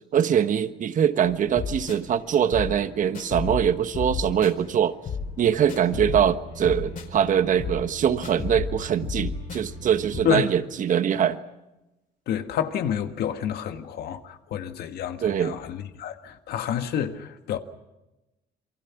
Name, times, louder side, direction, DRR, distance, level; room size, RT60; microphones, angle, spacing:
voice 1, 0.1-5.0 5.4-11.4 15.2-15.6, right 9 dB, 50° right, 1.3 m, -23 dB
sound 1, 1.2-10.2, left 5 dB, 50° left, 4.6 m, -34 dB
voice 2, 12.3-17.6, left 9 dB, 70° left, 1.8 m, -29 dB
28.0 x 23.5 x 6.0 m
cardioid pair, 110°, 17 cm